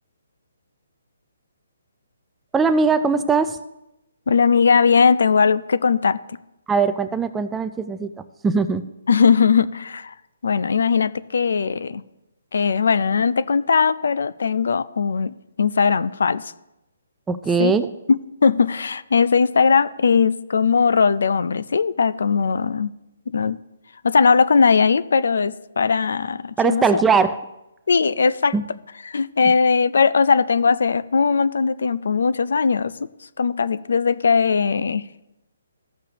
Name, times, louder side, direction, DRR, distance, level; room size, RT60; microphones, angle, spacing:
voice 1, 2.5-3.6 6.7-8.1 8.4-8.8 17.3-17.9 26.6-27.4 28.5-28.6, right 5 dB, 10° right, 10 dB, 0.3 m, -20 dB
voice 2, 4.3-6.2 9.1-10.1 10.4-12.0 12.5-16.5 17.6-17.7 18.1-22.9 23.3-23.6 24.0-26.8 27.9-28.5 29.1-33.1 33.4-35.0, left 5 dB, 70° left, 16 dB, 0.4 m, -19 dB
14.5 x 6.5 x 2.9 m, 0.92 s
hypercardioid pair, 160°, 0 cm